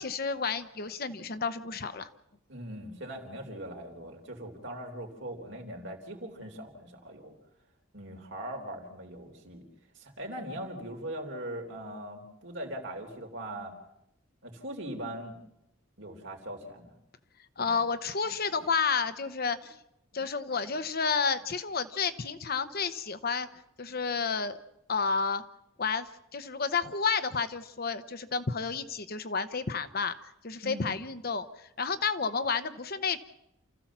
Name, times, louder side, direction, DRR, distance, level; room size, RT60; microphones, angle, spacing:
voice 1, 0.0-2.1 17.6-19.8 20.1-23.5 23.8-24.6 24.9-25.4 25.8-30.1 30.4-33.2, left 5 dB, 50° left, 10 dB, 0.9 m, -31 dB
voice 2, 2.5-7.4 7.9-9.6 9.9-13.7 14.4-15.4 16.0-16.9 17.6-17.8 30.6-30.8, right 1 dB, 60° right, 2 dB, 3.8 m, -40 dB
28.5 x 14.5 x 7.4 m, 0.85 s
head